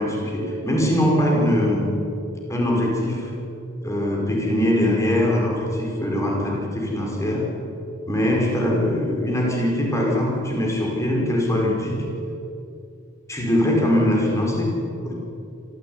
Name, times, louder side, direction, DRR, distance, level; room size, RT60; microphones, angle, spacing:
voice 1, 0.0-1.9 2.5-3.3 3.8-7.4 8.1-12.0 13.3-14.7 15.0-15.1, left 1 dB, 15° left, -1 dB, 5.5 m, -22 dB
25.5 x 15.0 x 9.8 m, 2.8 s
head